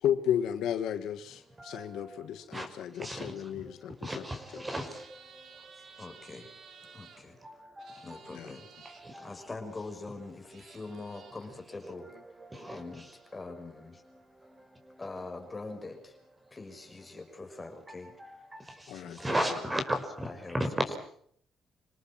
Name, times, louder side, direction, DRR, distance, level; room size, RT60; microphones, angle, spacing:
voice 1, 0.0-4.2 4.5-4.6 8.3-8.5 18.9-19.2, left 10 dB, 80° left, 10 dB, 1.6 m, -33 dB
voice 2, 4.0-4.9 7.8-7.9 9.1-9.2 12.7-12.8 18.2-18.3 19.2-20.0, right 1 dB, 15° right, 7 dB, 5.5 m, -33 dB
sound 1, 4.6-7.2 7.8-9.0 10.1-10.2 10.5-11.5, right 6 dB, 65° right, 3.8 m, -54 dB
voice 3, 6.0-6.5 6.9-7.4 8.0-8.7 9.2-12.1 12.7-13.1 13.3-14.0 15.0-16.1 16.5-18.1 19.0-19.3 20.2-20.6, left 3 dB, 25° left, 5 dB, 6.1 m, -43 dB
27.0 x 18.5 x 7.5 m, 0.64 s
cardioid pair, 90°, 0 cm